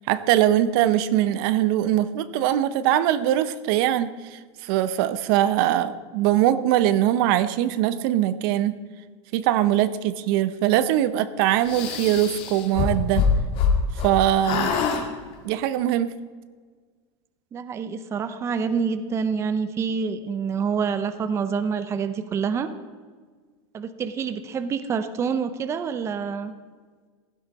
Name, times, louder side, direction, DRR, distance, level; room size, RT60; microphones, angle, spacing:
voice 1, 0.1-8.8 9.3-13.3 14.0-14.8 15.4-16.1, right 12 dB, 55° right, 14 dB, 0.7 m, -22 dB
sound 1, 11.6-14.1 14.4-15.0, left 6 dB, 40° left, 2.1 m, -24 dB
voice 2, 17.5-22.7 23.7-26.5, right 6 dB, 20° right, 11 dB, 0.6 m, -27 dB
16.0 x 11.5 x 4.2 m, 1.5 s
supercardioid pair, 150°, 14 cm